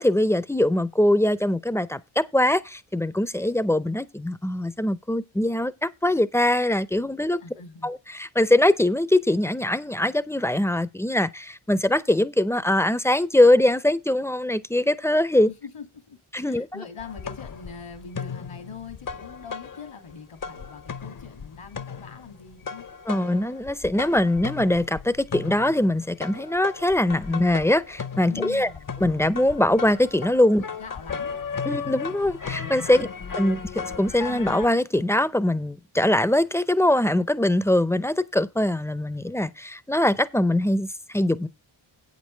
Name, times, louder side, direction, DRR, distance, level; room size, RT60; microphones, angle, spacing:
voice 1, 0.0-7.4 7.8-15.5 16.3-16.7 23.1-28.7 29.0-30.6 31.7-33.1 33.4-33.6 34.0-41.5, left 1 dB, 5° left, 0.5 m, -22 dB
voice 2, 7.4-7.9 15.5-16.2 16.4-22.9 28.3-28.9 30.5-31.4 33.0-33.2, left 5 dB, 85° left, 2.5 m, -42 dB
sound 1, 17.0-20.1 20.4-34.7, left 6 dB, 40° left, 0.7 m, -36 dB
8.7 x 7.4 x 4.5 m
wide cardioid pair, 95°, 49 cm